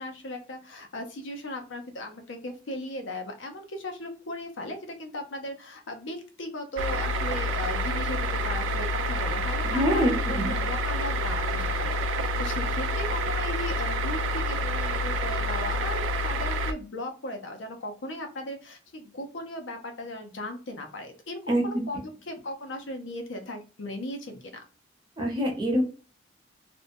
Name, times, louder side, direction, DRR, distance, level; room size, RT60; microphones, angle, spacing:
voice 1, 0.0-24.6, left 1 dB, 75° left, 4 dB, 0.6 m, -37 dB
sound 1, 6.8-16.7, equal, 85° right, 0.3 m, -28 dB
voice 2, 9.6-10.6 21.5-21.8 25.2-25.8, equal, 25° right, -1 dB, 0.8 m, -25 dB
2.6 x 2.2 x 2.6 m, 0.37 s
head